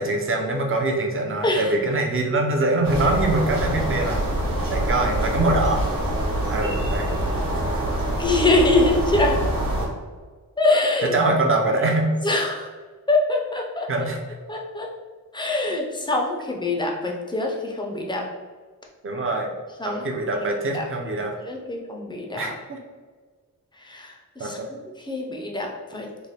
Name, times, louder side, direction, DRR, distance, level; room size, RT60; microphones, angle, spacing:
voice 1, 0.0-4.2 4.7-5.8 6.5-7.2 11.0-12.1 13.9-14.2 19.0-19.5 19.8-21.3 22.4-22.8 24.4-24.7, right 2 dB, 40° right, 2 dB, 0.6 m, -23 dB
sound 1, 2.8-9.9, right 1 dB, 70° right, 1.1 m, -25 dB
voice 2, 8.2-9.4 10.6-11.1 12.2-12.7 13.1-13.9 14.5-14.9 15.3-18.2 19.8-20.0 20.7-20.9 21.5-22.5 23.8-24.6 25.1-26.1, left 2 dB, 15° left, 1 dB, 0.5 m, -23 dB
3.2 x 2.1 x 4.0 m, 1.4 s
wide cardioid pair, 135°, 34 cm